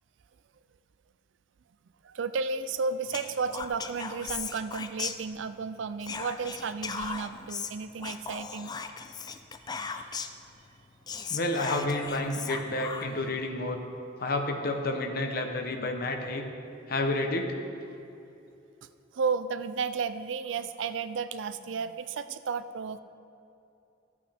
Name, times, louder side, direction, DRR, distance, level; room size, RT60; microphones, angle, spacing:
voice 1, 2.0-8.7 9.8-10.3 13.1-13.2 19.1-23.0, right 5 dB, 85° right, 13 dB, 0.4 m, -33 dB
Whispering, 3.1-5.6 6.0-10.4 10.8-10.9 11.1-13.3, left 5 dB, 20° left, 0.4 m, -38 dB
voice 2, 11.3-13.8 14.2-16.4 16.9-17.5, left 2 dB, 55° left, 4 dB, 1.0 m, -30 dB
13.0 x 8.5 x 3.5 m, 2.8 s
head